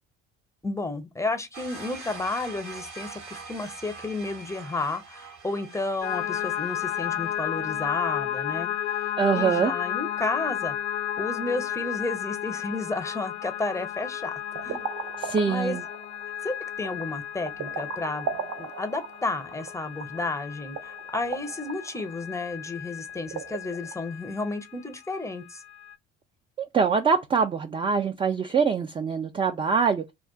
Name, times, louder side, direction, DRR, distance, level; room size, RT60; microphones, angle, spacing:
voice 1, 0.6-10.8 11.2-14.8 15.5-15.8 16.4-18.3 18.6-25.6, left 3 dB, 10° left, 0.7 m, -32 dB
sound 1, 1.5-7.4, right 4 dB, 75° right, 1.2 m, -43 dB
sound 2, 6.0-24.7 25.2-26.0, left 11 dB, 55° left, 0.5 m, -33 dB
voice 2, 9.2-9.7 15.2-15.8 26.6-30.1, right 5 dB, 15° right, 0.3 m, -24 dB
sound 3, 14.4-23.9, right 6 dB, 55° right, 0.7 m, -38 dB
2.4 x 2.3 x 3.5 m
figure-of-eight pair, 55°, 35 cm